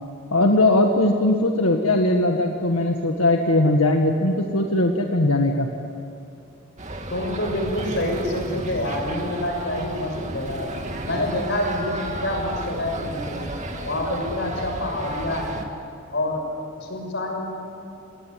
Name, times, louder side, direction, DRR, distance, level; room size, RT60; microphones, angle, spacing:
voice 1, 0.3-5.7, left 2 dB, 85° left, 3 dB, 1.8 m, -20 dB
sound 1, 6.8-15.7, right 1 dB, 35° right, 2.3 m, -32 dB
voice 2, 7.1-10.7 11.0-13.5 13.8-15.6 16.1-16.5 16.8-17.4, left 1 dB, 55° left, 3 dB, 6.4 m, -27 dB
29.5 x 20.5 x 9.3 m, 2.7 s
head